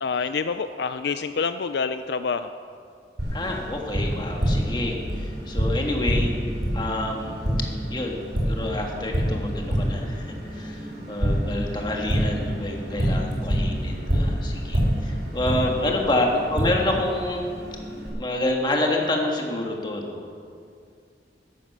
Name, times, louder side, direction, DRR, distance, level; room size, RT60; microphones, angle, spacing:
voice 1, 0.0-2.5, left 5 dB, 75° left, 10 dB, 0.4 m, -27 dB
Tap, 3.2-18.1, equal, 85° right, 4.5 m, -27 dB
voice 2, 3.3-6.3 6.7-7.5 7.9-17.5 18.1-20.3, left 1 dB, 25° left, 0 dB, 1.8 m, -28 dB
12.5 x 11.0 x 6.8 m, 2.3 s
head